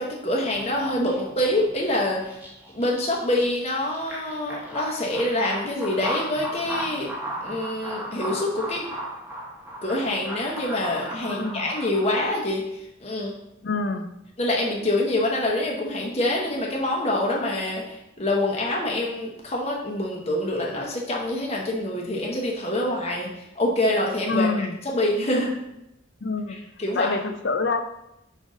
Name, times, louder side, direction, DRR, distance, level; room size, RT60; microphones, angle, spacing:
voice 1, 0.0-2.4 2.7-7.1 7.4-8.9 9.8-13.3 14.4-25.5 26.5-27.2, left 1 dB, 30° left, -2 dB, 0.9 m, -26 dB
sound 1, 0.5-12.3, equal, 10° right, 1.0 m, -36 dB
voice 2, 11.3-11.7 13.6-14.1 24.3-24.7 26.2-26.6 27.0-27.8, left 3 dB, 55° left, 7 dB, 0.5 m, -26 dB
5.2 x 4.0 x 4.9 m, 0.85 s
head